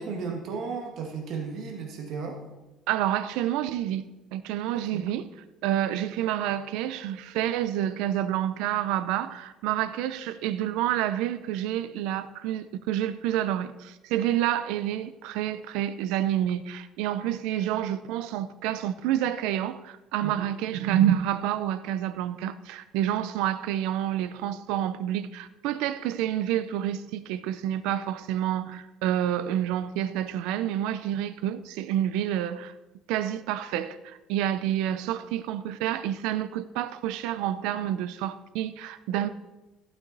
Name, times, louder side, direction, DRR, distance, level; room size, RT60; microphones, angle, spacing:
voice 1, 0.0-2.4 4.7-5.1 20.2-20.4, right 5 dB, 50° right, 1.7 m, -34 dB
voice 2, 2.9-5.3 5.6-32.7 33.1-39.3, right 11 dB, 85° right, 0.6 m, -28 dB
14.5 x 8.7 x 4.0 m
cardioid pair, 170°, 0 cm